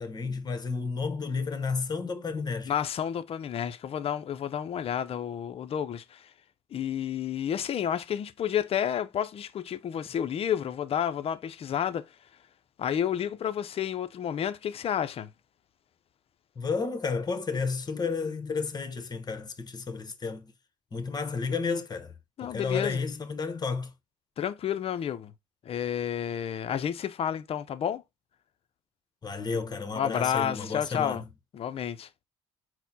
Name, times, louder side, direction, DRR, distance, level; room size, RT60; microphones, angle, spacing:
voice 1, 0.0-2.7 16.6-20.5 20.9-22.1 22.4-23.9 29.2-31.3, left 4 dB, 30° left, 0.9 m, -32 dB
voice 2, 2.7-6.3 6.7-12.1 12.8-15.3 22.4-23.0 24.4-25.3 25.6-28.0 29.9-31.3 31.5-32.1, left 9 dB, 45° left, 0.5 m, -30 dB
4.2 x 2.1 x 4.0 m
supercardioid pair, 65°, 13 cm